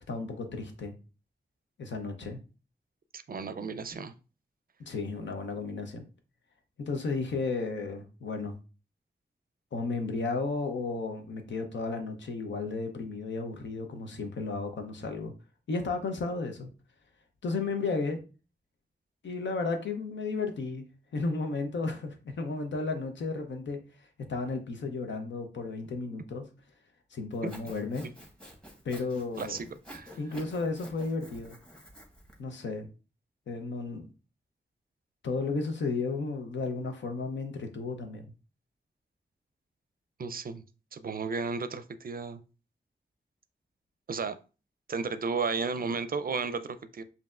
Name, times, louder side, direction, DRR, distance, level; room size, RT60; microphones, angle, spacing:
voice 1, 0.1-0.9 1.8-2.4 4.9-6.0 6.8-8.6 9.7-15.3 15.7-16.7 17.4-18.2 19.2-20.9 21.1-23.8 24.3-26.4 27.1-28.0 28.8-29.6 30.2-31.6 32.4-32.9 33.5-34.0 35.2-38.3, left 3 dB, 90° left, 6 dB, 0.7 m, -33 dB
voice 2, 3.1-4.1 29.3-30.2 40.2-40.6 40.9-42.4 44.1-44.4 44.9-47.0, right 4 dB, 55° right, 12 dB, 0.4 m, -33 dB
Sawing, 27.3-32.4, equal, 5° left, 1.3 m, -49 dB
5.1 x 2.7 x 2.4 m, 0.33 s
cardioid pair, 40°, 18 cm